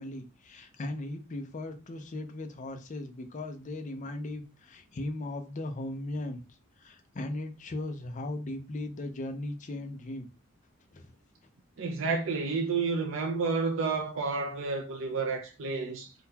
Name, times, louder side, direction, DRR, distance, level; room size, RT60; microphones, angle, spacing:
voice 1, 0.0-6.4 6.8-10.3 10.9-11.1, left 2 dB, 35° left, 0.5 m, -37 dB
voice 2, 11.8-16.1, right 4 dB, 65° right, 0.5 m, -30 dB
3.7 x 2.2 x 2.7 m
head